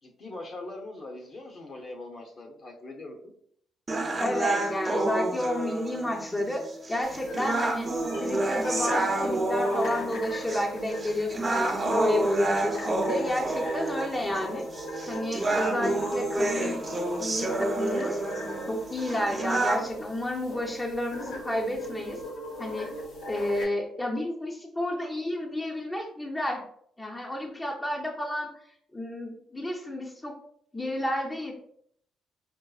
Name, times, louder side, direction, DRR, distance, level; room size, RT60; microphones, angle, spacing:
voice 1, 0.0-3.3, left 2 dB, 45° left, 2 dB, 0.8 m, -42 dB
sound 1, 3.9-19.9, right 2 dB, 25° right, 0.7 m, -29 dB
voice 2, 4.2-7.9 8.2-14.7 15.1-16.8 17.2-18.2 18.6-22.2 22.6-22.9 23.3-26.6 27.0-28.5 28.9-30.4 30.7-31.5, left 1 dB, 15° left, -1 dB, 0.6 m, -31 dB
sound 2, 7.0-23.6, left 1 dB, 80° left, 1.0 m, -39 dB
5.2 x 2.0 x 2.3 m, 0.66 s
cardioid pair, 90°, 0 cm